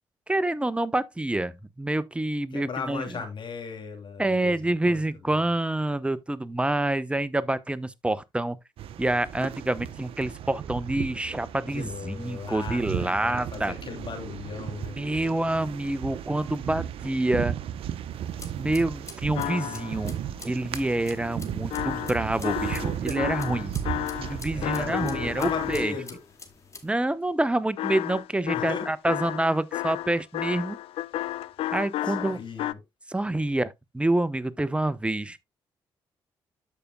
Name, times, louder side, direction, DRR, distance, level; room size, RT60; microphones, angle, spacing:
voice 1, 0.3-3.1 4.2-8.6 9.0-13.7 14.9-17.6 18.6-20.1 20.4-23.8 24.2-25.9 26.8-30.8 31.7-32.4 33.1-35.4, right 1 dB, 10° right, 0.9 m, -27 dB
voice 2, 2.5-5.4 11.7-15.0 24.5-26.2 28.5-28.9 32.0-32.8, left 5 dB, 55° left, 2.8 m, -37 dB
sound 1, 8.8-25.9, right 10 dB, 70° right, 0.7 m, -35 dB
sound 2, 18.1-26.9, left 3 dB, 30° left, 2.1 m, -48 dB
sound 3, 19.4-20.1 21.7-26.1 27.8-32.7, left 14 dB, 75° left, 0.4 m, -32 dB
13.5 x 5.2 x 2.2 m
supercardioid pair, 55°, 10 cm